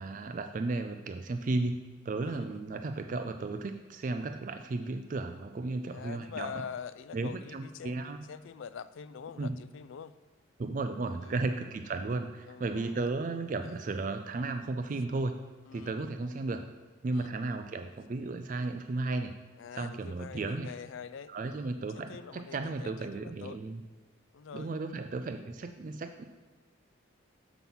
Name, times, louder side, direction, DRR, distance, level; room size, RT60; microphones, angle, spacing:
voice 1, 0.0-1.8 2.1-6.5 7.1-8.2 9.4-9.6 10.6-15.4 15.7-16.6 17.0-19.4 19.7-20.7 21.3-23.8 24.5-26.3, right 3 dB, 40° right, 7 dB, 0.3 m, -34 dB
voice 2, 2.2-2.6 5.9-8.0 8.3-10.1 11.2-11.7 12.5-13.1 13.6-13.8 15.7-16.1 17.1-17.5 19.6-23.6 24.3-24.7, left 7 dB, 75° left, 15 dB, 0.4 m, -45 dB
7.0 x 6.0 x 5.5 m, 1.5 s
head